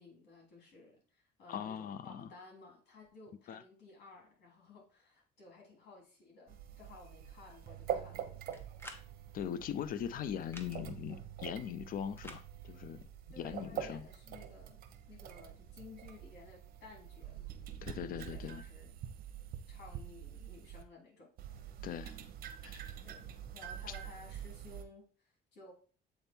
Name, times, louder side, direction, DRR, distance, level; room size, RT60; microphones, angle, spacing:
voice 1, 0.0-8.6 13.3-17.5 17.8-19.0 19.7-21.3 23.0-25.7, left 3 dB, 75° left, 3.2 m, -56 dB
voice 2, 1.5-2.3 3.5-3.6 9.3-13.1 13.4-14.1 17.8-18.6 21.8-22.1 22.6-22.9, left 9 dB, 55° left, 0.5 m, -40 dB
sound 1, 6.5-20.8 21.4-24.8, right 10 dB, 60° right, 0.9 m, -45 dB
sound 2, 8.5-9.1 10.4-10.7 12.2-12.4, left 1 dB, 15° left, 1.0 m, -49 dB
7.9 x 3.5 x 4.3 m
cardioid pair, 110°, 17 cm